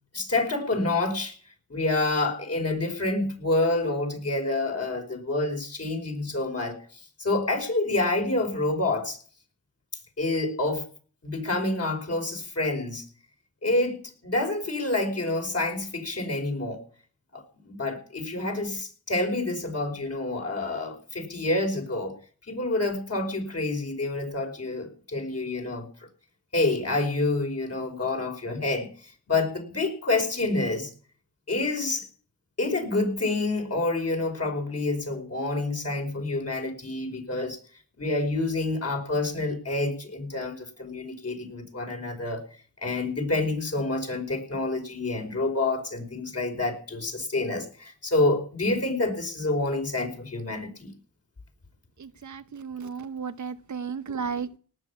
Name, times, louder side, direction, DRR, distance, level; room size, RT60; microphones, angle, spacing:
voice 1, 0.1-1.4 1.7-9.2 10.2-10.9 11.2-13.1 13.6-16.9 17.3-22.2 22.5-25.9 26.5-30.9 31.5-32.1 32.6-37.6 38.0-42.5 42.8-50.9, left 2 dB, 40° left, 2 dB, 5.2 m, -28 dB
voice 2, 52.0-54.6, right 6 dB, 55° right, 12 dB, 0.8 m, -34 dB
18.5 x 6.7 x 8.6 m, 0.43 s
cardioid pair, 80°, 36 cm